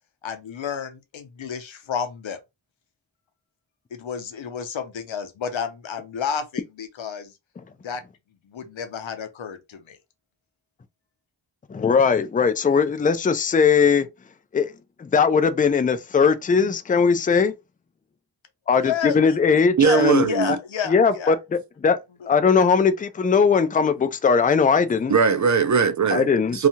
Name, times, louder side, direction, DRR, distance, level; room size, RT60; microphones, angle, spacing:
voice 1, 0.2-2.4 3.9-7.3 7.8-8.0 8.4-10.0 18.8-19.4 19.8-21.4, left 7 dB, 80° left, 0.7 m, -30 dB
voice 2, 11.7-14.1 14.5-14.7 15.0-17.5 18.7-20.2 20.9-22.0 22.3-25.1 26.1-26.6, left 5 dB, 20° left, 0.3 m, -19 dB
voice 3, 19.8-20.6 25.1-26.3 26.5-26.7, right 6 dB, 40° right, 0.4 m, -19 dB
2.6 x 2.4 x 2.8 m
wide cardioid pair, 70°, 46 cm